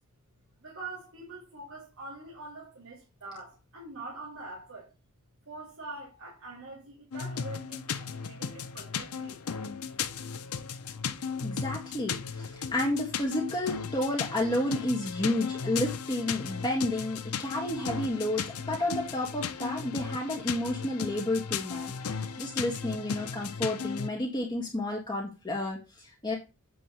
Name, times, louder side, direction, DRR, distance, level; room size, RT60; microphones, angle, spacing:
voice 1, 0.6-4.9 5.5-9.4, right 2 dB, 65° right, 3.0 m, -44 dB
sound 1, 7.1-24.1, left 6 dB, 70° left, 0.7 m, -36 dB
voice 2, 11.4-26.3, left 1 dB, 20° left, 1.7 m, -31 dB
9.0 x 3.5 x 6.9 m
head